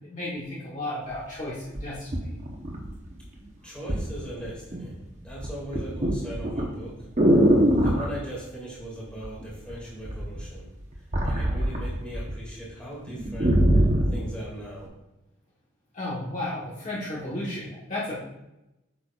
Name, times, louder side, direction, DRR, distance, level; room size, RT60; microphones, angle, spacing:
voice 1, 0.0-2.3 15.9-18.2, left 1 dB, 35° left, -7 dB, 1.4 m, -33 dB
sound 1, 1.1-1.2 1.8-3.2 3.9-4.1 4.5-4.9 5.2-8.1 9.2-9.7 10.0-12.3 12.7-12.8 13.1-14.2 14.9-15.0, equal, 35° right, 1.0 m, -23 dB
voice 2, 3.6-5.0 5.2-7.0 7.8-10.7 11.2-13.9 14.1-14.9, equal, 5° left, -6 dB, 2.4 m, -39 dB
8.4 x 6.5 x 2.5 m, 0.94 s
head